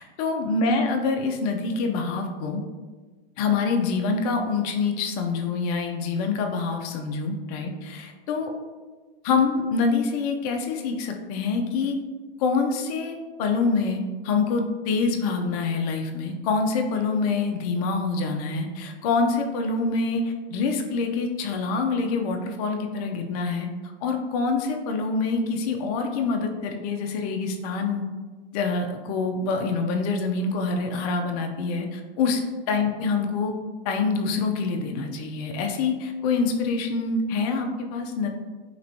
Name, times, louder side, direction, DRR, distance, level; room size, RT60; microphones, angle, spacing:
voice 1, 0.0-2.6 3.4-8.5 9.2-11.9 12.4-23.7 24.0-28.0 28.5-32.4 32.7-33.5 33.8-38.3, left 4 dB, 40° left, 3 dB, 0.4 m, -26 dB
3.3 x 2.9 x 2.6 m, 1.4 s
hypercardioid pair, 135°, 32 cm